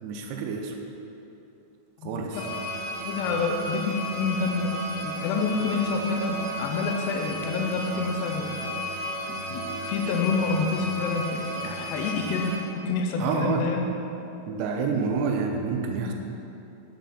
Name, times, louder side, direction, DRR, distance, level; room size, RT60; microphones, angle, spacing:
voice 1, 0.0-0.8 2.0-2.4 13.2-13.7 14.5-16.1, right 5 dB, 85° right, 2 dB, 2.6 m, -28 dB
sound 1, 2.3-12.6, equal, 60° right, 2.5 m, -34 dB
voice 2, 3.0-8.6 9.5-12.6 12.9-13.9, left 4 dB, 80° left, 2 dB, 2.8 m, -28 dB
7.4 x 5.6 x 5.6 m, 2.8 s
omnidirectional pair, 4.9 m